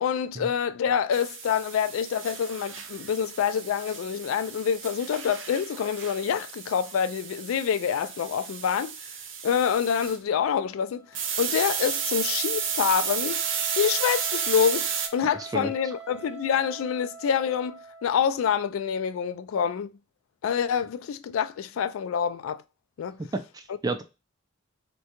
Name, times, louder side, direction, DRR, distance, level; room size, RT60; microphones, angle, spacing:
voice 1, 0.0-8.9 9.4-13.4 13.7-19.9 20.4-22.6 23.0-23.2, left 7 dB, 80° left, 0.3 m, -26 dB
sound 1, 1.1-10.2 11.1-15.1, right 7 dB, 65° right, 0.6 m, -33 dB
Wind instrument woodwind instrument, 10.4-18.5, right 6 dB, ahead, 0.7 m, -45 dB
voice 2, 15.4-15.7 23.3-24.0, right 3 dB, 20° right, 0.3 m, -31 dB
3.6 x 2.2 x 2.8 m
head